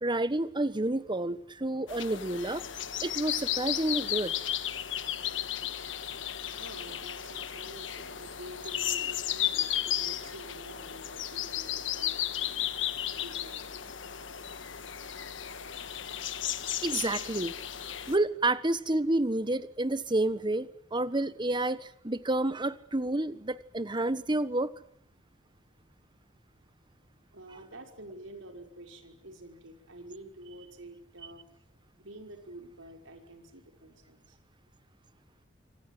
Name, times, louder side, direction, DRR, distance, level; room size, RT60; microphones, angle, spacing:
voice 1, 0.0-2.6 3.0-4.3 16.8-17.5 18.1-24.7, right 2 dB, 25° right, 14 dB, 1.3 m, -29 dB
sound 1, 1.9-18.2, left 11 dB, 70° left, 1.5 m, -34 dB
voice 2, 6.6-13.7 27.3-34.4, right 1 dB, 85° right, 4 dB, 5.8 m, -49 dB
26.5 x 25.5 x 7.8 m, 0.63 s
head